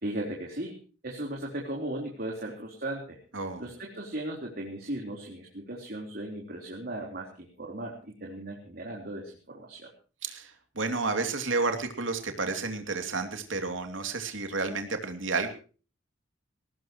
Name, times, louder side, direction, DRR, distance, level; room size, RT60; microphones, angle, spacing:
voice 1, 0.0-0.8 1.0-3.2 3.6-9.9, right 1 dB, 50° right, 0 dB, 3.8 m, -37 dB
voice 2, 3.3-3.6 10.2-15.5, right 3 dB, 85° right, 6 dB, 2.8 m, -31 dB
20.5 x 18.5 x 3.1 m, 0.37 s
head